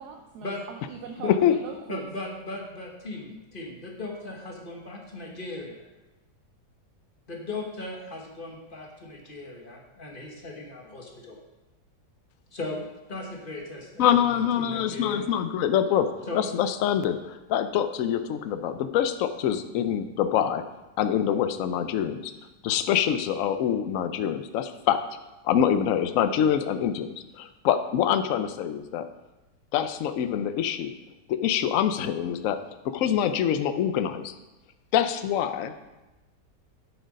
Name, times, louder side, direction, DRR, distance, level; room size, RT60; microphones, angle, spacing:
voice 1, 0.0-2.0, right 6 dB, 70° right, 4 dB, 1.2 m, -40 dB
voice 2, 1.9-5.7 7.3-11.4 12.5-12.8 13.1-15.2 16.3-16.4, left 2 dB, 30° left, 0 dB, 1.3 m, -37 dB
voice 3, 14.0-16.1 16.3-20.6 21.0-22.3 22.6-25.0 25.4-29.1 29.7-30.9 31.3-32.6 32.8-34.3 34.9-35.7, left 9 dB, 65° left, 10 dB, 0.8 m, -25 dB
7.7 x 6.5 x 5.2 m, 1.0 s
omnidirectional pair, 1.9 m